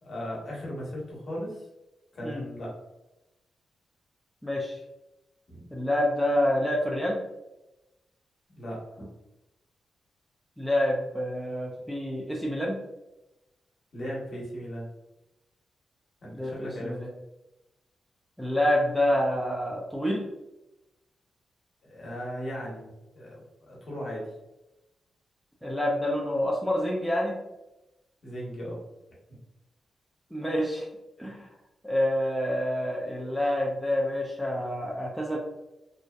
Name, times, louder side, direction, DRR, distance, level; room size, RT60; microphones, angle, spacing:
voice 1, 0.0-1.7 2.1-2.8 5.5-5.7 8.5-9.1 13.9-14.9 16.2-17.0 21.8-22.9 23.1-24.3 28.2-28.8, equal, 50° left, -4 dB, 0.9 m, -37 dB
voice 2, 4.4-4.8 5.7-7.2 10.6-12.8 16.3-17.1 18.4-20.3 25.6-27.3 30.3-30.9 31.2-31.5 31.8-35.4, left 1 dB, ahead, -3 dB, 0.3 m, -27 dB
2.6 x 2.1 x 2.2 m, 0.96 s
wide cardioid pair, 135°, 0 cm